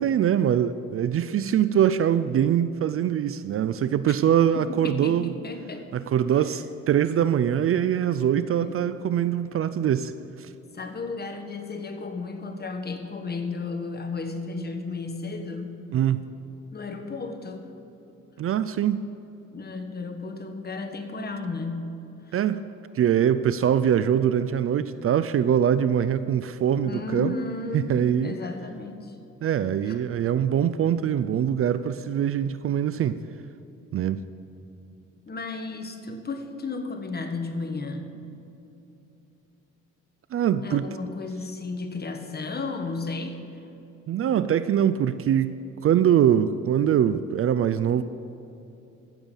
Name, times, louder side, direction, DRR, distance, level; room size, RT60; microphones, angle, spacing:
voice 1, 0.0-5.3 5.9-10.1 10.4-10.5 15.9-16.3 18.4-19.0 22.3-22.6 22.9-27.3 27.7-28.3 29.4-33.2 33.9-34.2 40.3-40.9 44.1-48.0, right 9 dB, 50° right, 14 dB, 0.4 m, -23 dB
voice 2, 4.5-5.9 8.6-9.0 10.7-15.8 16.7-17.7 19.5-21.9 22.3-22.4 26.8-29.2 29.8-30.0 35.3-38.1 40.6-43.4, left 3 dB, 30° left, 6 dB, 1.4 m, -34 dB
15.0 x 7.0 x 5.5 m, 2.9 s
cardioid pair, 90°, 30 cm